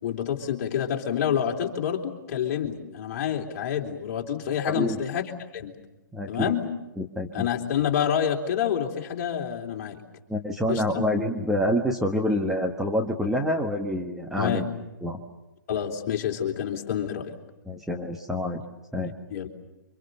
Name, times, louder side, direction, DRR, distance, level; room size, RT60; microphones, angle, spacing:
voice 1, 0.0-5.3 5.5-5.7 6.3-6.7 7.3-10.0 10.7-11.0 14.4-14.6 15.7-17.3 19.3-19.5, left 9 dB, 45° left, 1 dB, 3.7 m, -28 dB
voice 2, 4.7-5.0 6.1-6.5 7.0-7.5 10.3-14.7 15.0-15.2 17.6-18.6 18.9-19.1, left 1 dB, 5° right, 1 dB, 1.5 m, -27 dB
29.0 x 25.5 x 6.8 m, 1.0 s
hypercardioid pair, 130°, 11 cm